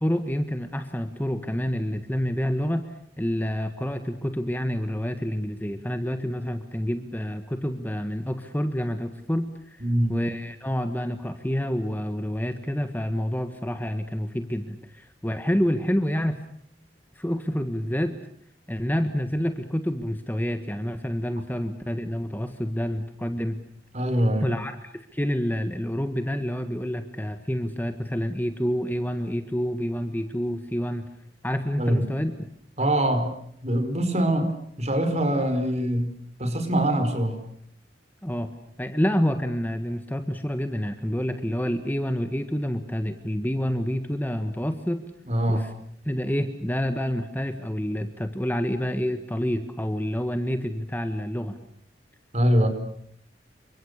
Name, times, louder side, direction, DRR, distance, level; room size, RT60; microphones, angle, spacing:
voice 1, 0.0-2.8 3.2-16.4 17.1-18.1 18.7-23.6 24.4-31.1 31.4-32.5 38.2-38.5 38.8-45.0 45.5-45.7 46.0-51.6, equal, 10° left, 8 dB, 1.5 m, -28 dB
voice 2, 9.8-10.2 23.9-24.5 31.8-32.1 32.8-33.3 33.6-36.1 36.4-37.4 45.3-45.7 52.3-52.7, right 1 dB, 40° right, 9 dB, 4.7 m, -23 dB
29.5 x 25.0 x 6.6 m, 0.68 s
head